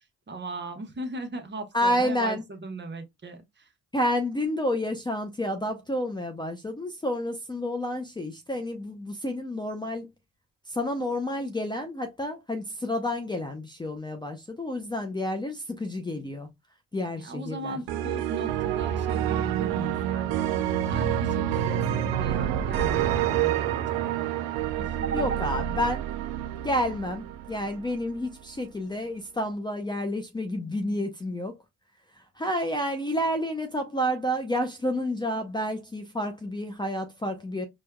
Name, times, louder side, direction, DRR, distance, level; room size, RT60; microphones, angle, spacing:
voice 1, 0.3-3.7 17.2-20.5 20.8-25.4, right 3 dB, 30° right, 1.0 m, -37 dB
voice 2, 1.7-2.4 3.9-10.1 10.7-16.5 16.9-17.8 25.0-26.0 26.6-31.6 32.1-37.7, left 1 dB, 15° left, 0.5 m, -30 dB
sound 1, 17.9-27.9, right 11 dB, 90° right, 0.5 m, -28 dB
4.4 x 2.3 x 2.2 m
supercardioid pair, 70°, 34 cm